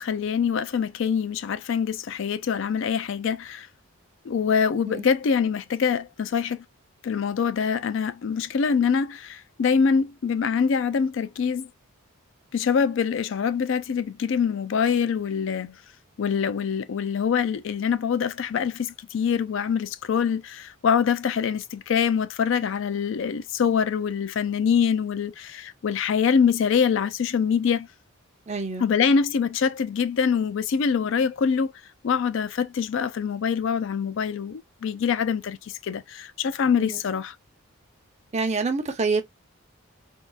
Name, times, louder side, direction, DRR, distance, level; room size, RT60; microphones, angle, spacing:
voice 1, 0.0-3.7 4.3-6.6 7.0-11.7 12.5-15.8 16.2-27.9 28.8-31.7 32.0-37.3, left 6 dB, 60° left, 0.3 m, -24 dB
voice 2, 28.5-28.9 36.8-37.0 38.3-39.2, right 4 dB, 30° right, 0.6 m, -26 dB
3.7 x 2.4 x 2.2 m
head